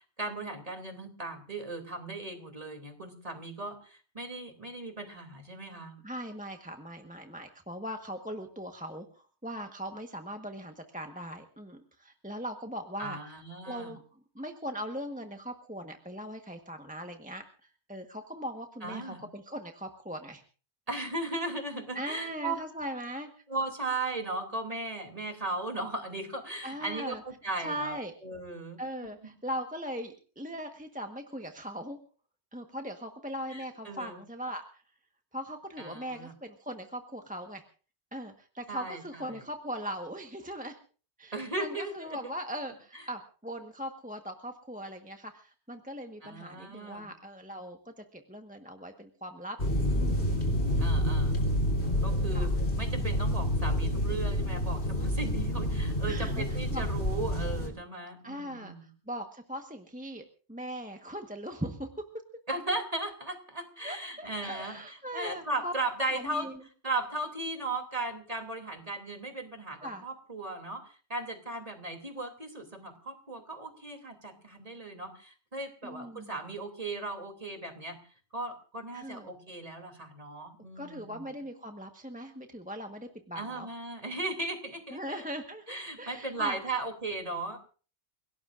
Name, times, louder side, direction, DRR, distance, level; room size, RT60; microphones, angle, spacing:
voice 1, 0.0-6.0 13.0-14.0 18.8-19.2 20.9-22.5 23.5-28.8 33.5-34.2 35.8-36.3 38.7-39.4 41.3-42.3 46.2-47.1 50.8-51.4 52.0-52.5 52.8-58.9 62.5-66.5 66.8-70.8 71.1-78.0 78.3-81.2 83.3-85.2 85.7-87.6, right 2 dB, 30° right, 5 dB, 3.0 m, -37 dB
voice 2, 6.0-13.3 13.6-17.4 17.9-20.4 21.9-23.3 26.6-27.2 27.6-28.1 28.8-32.0 32.5-34.8 35.3-37.6 38.1-40.8 41.2-49.6 49.9-50.2 52.3-52.5 56.0-56.4 56.7-56.9 58.2-61.9 63.8-65.7 66.1-66.6 69.8-70.0 75.8-76.3 78.9-79.3 80.8-83.7 84.9-86.8, equal, 5° right, 4 dB, 1.2 m, -40 dB
sound 1, 49.6-57.7, equal, 70° left, 3.7 m, -28 dB
29.5 x 17.5 x 2.5 m, 0.39 s
omnidirectional pair, 1.1 m